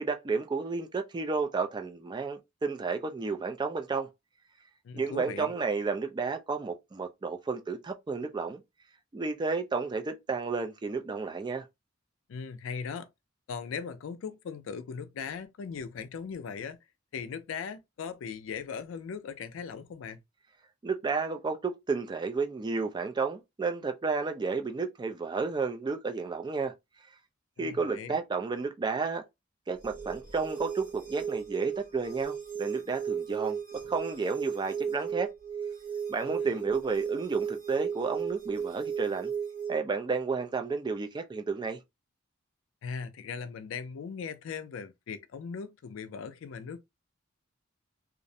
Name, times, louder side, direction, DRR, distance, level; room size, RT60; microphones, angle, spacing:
voice 1, 0.0-4.1 4.9-8.6 9.1-11.6 20.8-26.7 27.6-29.2 29.7-33.6 33.9-35.3 36.1-39.3 39.7-41.8, right 4 dB, 20° right, 0.3 m, -32 dB
voice 2, 4.8-5.5 12.3-13.1 13.5-16.8 17.1-20.2 27.6-28.2 36.2-36.5 42.8-46.8, left 6 dB, 75° left, 0.4 m, -39 dB
sound 1, 29.8-39.8, right 7 dB, 45° right, 0.9 m, -35 dB
2.4 x 2.0 x 2.6 m
head